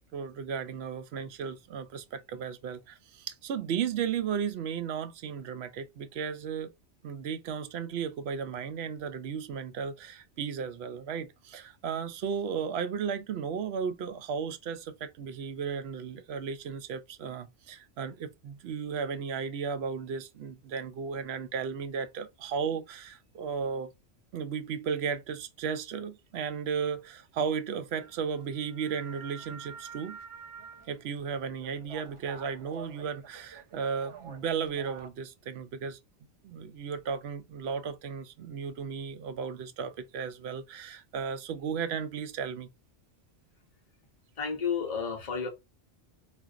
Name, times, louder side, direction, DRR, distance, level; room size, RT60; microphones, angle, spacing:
voice 1, 0.0-6.7 7.0-23.9 24.3-30.2 30.9-36.0 36.4-42.7, right 6 dB, 70° right, 0.8 m, -35 dB
sound 1, 28.0-35.1, right 5 dB, 50° right, 0.4 m, -48 dB
voice 2, 44.4-45.5, left 6 dB, 35° left, 1.0 m, -31 dB
3.9 x 2.5 x 2.4 m
omnidirectional pair, 1.2 m